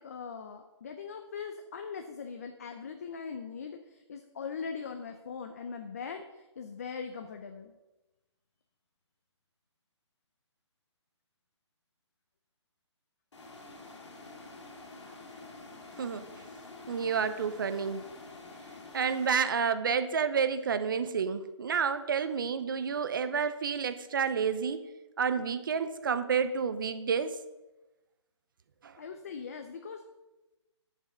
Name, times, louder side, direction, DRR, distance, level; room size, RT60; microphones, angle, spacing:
voice 1, 0.0-7.7 29.0-30.0, left 6 dB, 30° left, 6 dB, 0.6 m, -41 dB
sound 1, 13.3-19.3, left 3 dB, 75° left, 2.6 m, -48 dB
voice 2, 16.9-18.0 18.9-24.9 25.2-27.4 28.8-28.9, right 6 dB, 45° right, 12 dB, 0.7 m, -30 dB
9.7 x 7.1 x 5.3 m, 1.1 s
hypercardioid pair, 170°, 15 cm